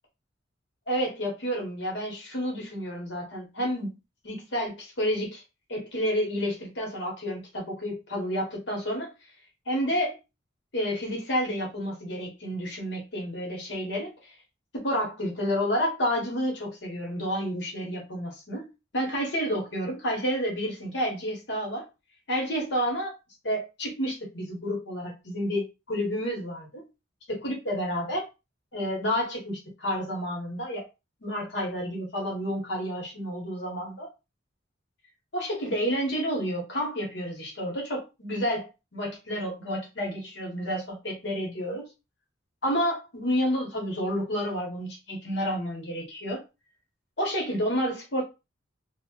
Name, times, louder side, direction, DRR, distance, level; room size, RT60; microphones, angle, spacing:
voice 1, 0.9-4.0 4.2-5.4 5.7-9.1 9.7-10.2 10.7-14.3 14.7-21.9 22.3-23.1 23.4-26.8 27.3-28.3 28.7-30.9 31.2-34.1 35.3-41.9 42.6-46.4 47.2-48.2, equal, 65° left, 1.1 m, -30 dB
2.9 x 2.1 x 3.0 m
head